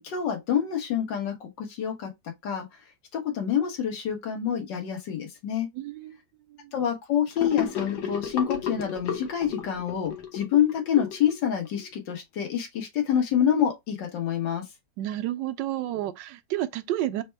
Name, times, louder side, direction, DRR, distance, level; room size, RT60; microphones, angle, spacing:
voice 1, 0.0-2.1 2.4-2.7 3.1-5.7 6.7-14.6, left 9 dB, 85° left, 1.8 m, -27 dB
voice 2, 5.7-6.2 6.5-6.7 15.0-17.2, right 13 dB, 85° right, 1.2 m, -31 dB
Gurgling / Sink (filling or washing), 7.4-11.8, left 7 dB, 70° left, 1.6 m, -33 dB
4.2 x 2.2 x 4.5 m
omnidirectional pair, 1.9 m